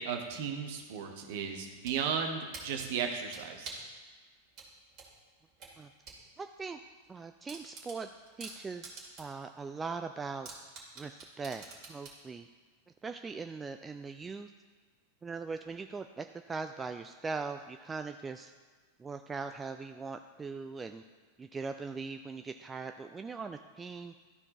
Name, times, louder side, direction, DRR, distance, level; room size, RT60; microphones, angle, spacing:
voice 1, 0.0-3.7, right 6 dB, 50° right, 4 dB, 1.1 m, -35 dB
sound 1, 1.5-2.0 2.5-3.9 4.5-6.2 6.6-6.7 7.0-7.1 7.5-9.4 9.8-9.9 10.4-12.2, right 4 dB, 35° right, 2.4 m, -47 dB
voice 2, 6.4-6.8 7.1-8.1 8.4-8.9 9.2-10.5 11.0-11.6 11.9-12.5 13.0-14.5 15.2-18.5 19.0-21.0 21.4-24.1, right 4 dB, 15° right, 7 dB, 0.3 m, -40 dB
13.0 x 4.5 x 4.2 m, 1.5 s
figure-of-eight pair, 90°, 0 cm